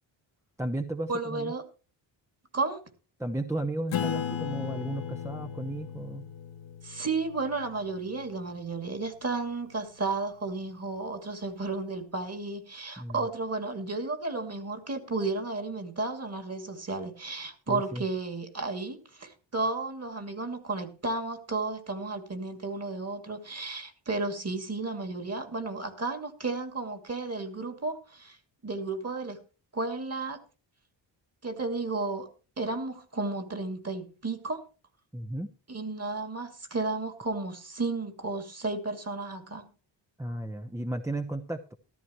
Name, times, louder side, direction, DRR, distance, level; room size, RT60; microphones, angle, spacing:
voice 1, 0.6-1.5 3.2-6.3 13.0-13.3 17.7-18.0 35.1-35.5 40.2-41.7, right 1 dB, 5° right, 0.9 m, -34 dB
voice 2, 1.1-1.6 2.5-2.8 6.8-28.4 28.6-29.4 29.7-30.4 31.4-32.3 32.6-34.6 35.7-39.7, right 3 dB, 30° right, 2.4 m, -33 dB
Acoustic guitar / Strum, 3.9-8.9, left 9 dB, 75° left, 1.7 m, -36 dB
14.0 x 13.0 x 3.1 m
cardioid pair, 85°, 46 cm